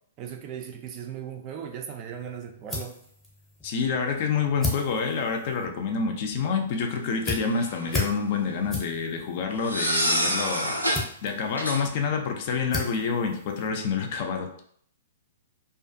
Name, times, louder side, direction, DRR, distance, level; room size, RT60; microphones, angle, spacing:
voice 1, 0.2-3.0, right 8 dB, 30° right, 3 dB, 0.3 m, -37 dB
sound 1, 2.1-14.2, left 2 dB, 5° left, 0.7 m, -37 dB
voice 2, 3.6-10.8 11.2-14.5, left 5 dB, 40° left, 3 dB, 0.4 m, -27 dB
sound 2, 7.4-8.1 9.6-11.1 11.6-11.8, equal, 90° right, 0.5 m, -27 dB
2.4 x 2.3 x 2.5 m, 0.63 s
figure-of-eight pair, 110°, 0 cm